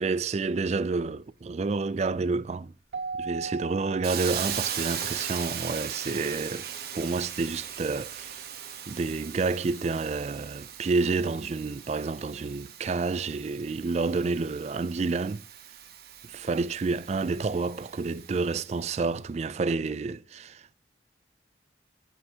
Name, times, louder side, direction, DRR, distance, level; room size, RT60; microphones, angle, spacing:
voice 1, 0.0-2.7 3.2-6.6 6.9-8.4 8.9-15.4 16.3-20.7, right 4 dB, 35° right, 0.3 m, -29 dB
Keyboard (musical), 2.9-5.2, right 4 dB, 90° right, 0.6 m, -37 dB
Hiss, 4.0-18.8, right 9 dB, 60° right, 1.1 m, -39 dB
15.5 x 5.6 x 2.8 m
head